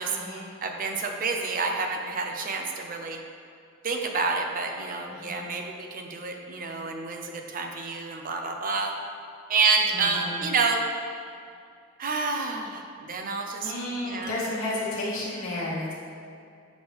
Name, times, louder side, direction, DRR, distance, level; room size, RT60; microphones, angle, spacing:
voice 1, 0.1-0.4 5.1-5.5 9.9-10.4 13.6-15.9, left 1 dB, 80° left, -7 dB, 1.2 m, -32 dB
voice 2, 0.6-3.2 3.8-8.9 9.5-10.8 12.0-13.7 14.0-14.3, right 4 dB, 40° right, 3 dB, 0.5 m, -28 dB
6.0 x 5.1 x 3.4 m, 2.4 s
head